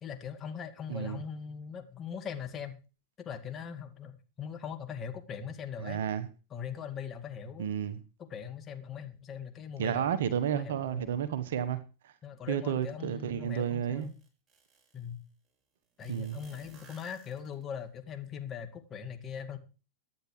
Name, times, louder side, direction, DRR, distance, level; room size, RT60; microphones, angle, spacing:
voice 1, 0.0-2.8 3.2-6.0 6.5-7.7 8.2-10.1 10.5-11.2 12.2-14.2 14.9-15.2 16.0-19.6, left 7 dB, 25° left, 2.1 m, -41 dB
voice 2, 0.9-1.2 5.8-6.3 7.6-8.0 9.8-12.1 12.5-14.1 16.1-16.4, right 9 dB, 60° right, 1.2 m, -32 dB
sound 1, 13.5-13.6 14.0-15.1 16.0-17.8, right 4 dB, 20° right, 5.4 m, -58 dB
23.0 x 9.7 x 3.3 m
figure-of-eight pair, 90°, 0 cm